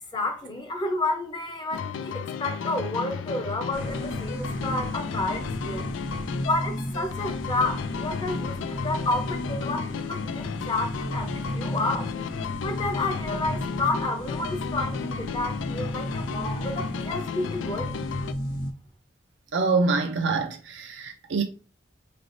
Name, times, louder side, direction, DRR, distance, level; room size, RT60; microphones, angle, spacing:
voice 1, 0.1-5.8 6.5-12.1 12.6-18.0, left 2 dB, 25° left, 0.6 m, -30 dB
sound 1, 1.7-18.3, left 6 dB, 80° left, 0.3 m, -34 dB
sound 2, 3.7-18.7, equal, 45° left, 1.1 m, -34 dB
voice 2, 19.5-21.4, right 4 dB, 70° right, 0.5 m, -25 dB
4.9 x 3.2 x 2.6 m
head